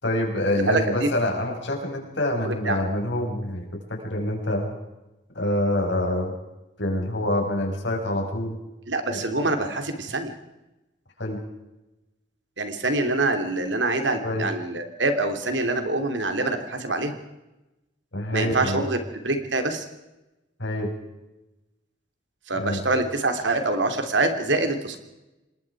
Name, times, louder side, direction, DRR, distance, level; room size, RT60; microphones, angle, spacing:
voice 1, 0.0-4.8 5.3-6.4 6.8-8.6 9.1-9.2 11.2-11.4 14.2-14.5 18.1-18.8 20.6-20.9 22.5-22.9, left 1 dB, 80° left, 2 dB, 6.0 m, -26 dB
voice 2, 0.7-1.1 2.4-2.8 8.9-10.3 12.6-17.1 18.3-19.0 19.2-19.9 22.5-25.0, right 2 dB, 85° right, 7 dB, 3.1 m, -25 dB
27.5 x 20.0 x 4.8 m, 1.0 s
head